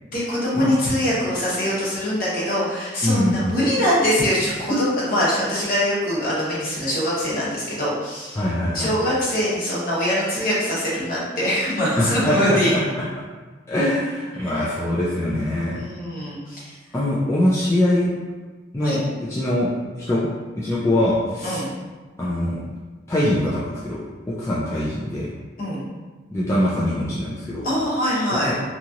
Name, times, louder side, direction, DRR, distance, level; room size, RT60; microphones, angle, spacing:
voice 1, 0.1-8.4 8.7-12.7 14.4-14.7 15.7-16.7 18.8-19.0 21.4-21.7 25.6-25.8 27.6-28.5, equal, 50° left, -7 dB, 0.9 m, -23 dB
voice 2, 3.0-3.4 8.4-8.9 12.0-13.0 13.7-15.8 16.9-18.1 18.7-19.0 19.3-19.7 20.0-20.3 20.6-21.6 22.2-22.6 23.1-24.0 24.4-25.3 26.3-27.7 28.5-28.6, left 1 dB, 15° left, -8 dB, 0.3 m, -22 dB
2.9 x 2.7 x 2.4 m, 1.3 s
head